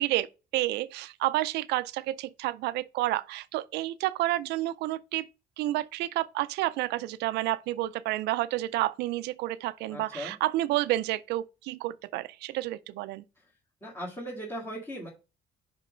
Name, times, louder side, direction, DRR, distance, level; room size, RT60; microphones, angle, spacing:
voice 1, 0.0-5.3 5.6-13.2, right 16 dB, 80° right, 0.4 m, -30 dB
voice 2, 9.9-10.3 13.8-15.1, equal, 15° left, 1.9 m, -38 dB
5.3 x 5.2 x 5.0 m
cardioid pair, 110°, 17 cm